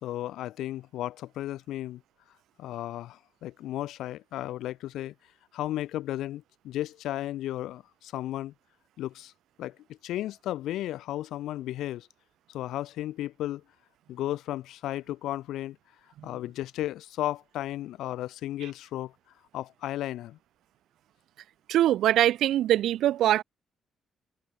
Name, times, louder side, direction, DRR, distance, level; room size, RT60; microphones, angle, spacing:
voice 1, 0.0-2.0 2.6-5.1 5.5-8.5 9.0-9.3 9.6-12.1 12.5-13.6 14.1-15.8 16.2-19.1 19.5-20.4, left 14 dB, 85° left, 3.4 m, -34 dB
voice 2, 21.7-23.4, right 12 dB, 80° right, 2.8 m, -22 dB
cardioid pair, 90°, 0 cm